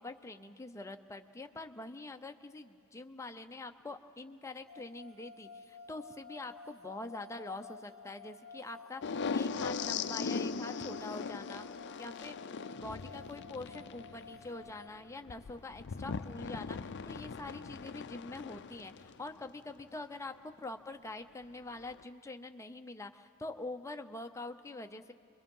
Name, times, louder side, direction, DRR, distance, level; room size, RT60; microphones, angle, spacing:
voice 1, 0.0-11.7 12.0-12.4 12.8-25.1, left 2 dB, 15° left, 6 dB, 0.6 m, -45 dB
sound 1, 4.7-14.9, left 3 dB, 35° right, 1.2 m, -52 dB
sound 2, 9.0-19.5 21.8-22.0, left 5 dB, 55° left, 0.5 m, -39 dB
29.5 x 22.5 x 5.4 m, 2.4 s
head